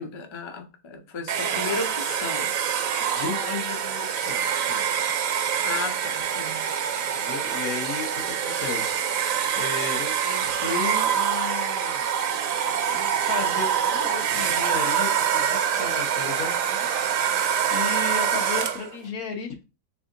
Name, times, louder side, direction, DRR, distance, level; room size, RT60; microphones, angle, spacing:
voice 1, 0.0-2.5 5.6-6.6, left 4 dB, 40° left, 0.4 m, -34 dB
Domestic sounds home sounds, 1.3-19.0, right 8 dB, 70° right, 1.0 m, -25 dB
voice 2, 3.0-4.8 7.1-9.0 9.5-12.1 12.4-12.6 12.9-17.0 17.7-19.6, left 5 dB, 80° left, 1.5 m, -34 dB
3.6 x 3.4 x 3.7 m
omnidirectional pair, 1.5 m